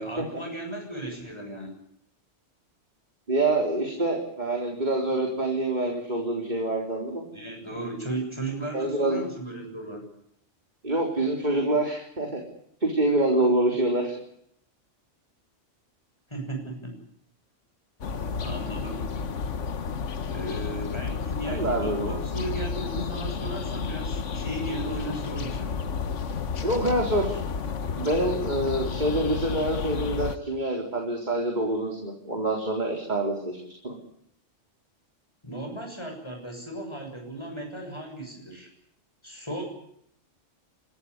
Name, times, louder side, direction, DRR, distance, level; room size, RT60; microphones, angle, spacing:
voice 1, 0.0-1.8 3.9-4.1 7.3-10.1 16.3-16.9 18.4-19.1 20.3-25.8 31.8-32.0 35.4-38.7 39.2-39.6, right 1 dB, 20° left, 2 dB, 7.1 m, -36 dB
voice 2, 3.3-7.3 8.7-9.2 10.8-12.4 12.8-14.1 18.2-18.3 21.5-22.2 26.6-27.4 28.0-33.6 33.8-33.9, right 1 dB, 35° right, 1 dB, 4.1 m, -26 dB
sound 1, 18.0-30.4, left 5 dB, 75° left, 1.5 m, -31 dB
29.0 x 14.0 x 9.7 m, 0.72 s
omnidirectional pair, 1.3 m